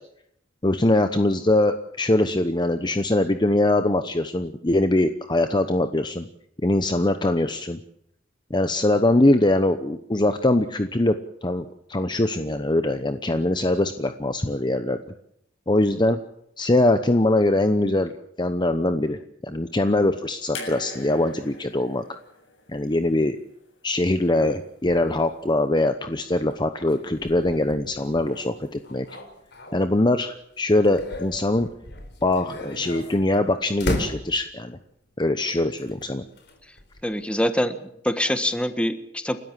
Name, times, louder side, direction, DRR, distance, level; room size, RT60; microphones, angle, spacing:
voice 1, 0.6-6.3 6.6-7.8 8.5-15.0 15.7-16.2 16.6-18.1 18.4-22.0 22.7-23.4 23.8-29.1 29.7-31.7 32.2-34.8 35.2-36.2, left 1 dB, 25° left, 9 dB, 0.9 m, -22 dB
sound 1, 20.5-23.7 24.9-25.0, left 3 dB, 75° left, 7.7 m, -41 dB
sound 2, 24.8-30.2 30.6-34.8 35.8-37.2, left 1 dB, 60° left, 4.6 m, -37 dB
voice 2, 37.0-39.4, equal, 5° left, 9 dB, 1.5 m, -25 dB
30.0 x 13.5 x 7.6 m, 0.72 s
head